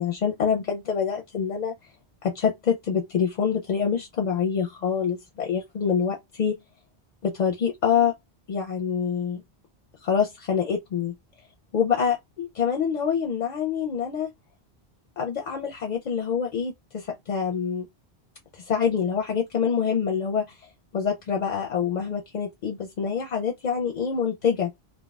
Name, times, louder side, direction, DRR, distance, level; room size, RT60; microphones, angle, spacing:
voice 1, 0.0-1.7 2.2-6.6 7.2-8.1 8.5-9.4 10.0-11.1 11.7-14.3 15.2-17.9 18.5-20.5 20.9-24.7, left 7 dB, 50° left, 0.5 m, -26 dB
3.5 x 2.2 x 2.3 m
omnidirectional pair, 1.1 m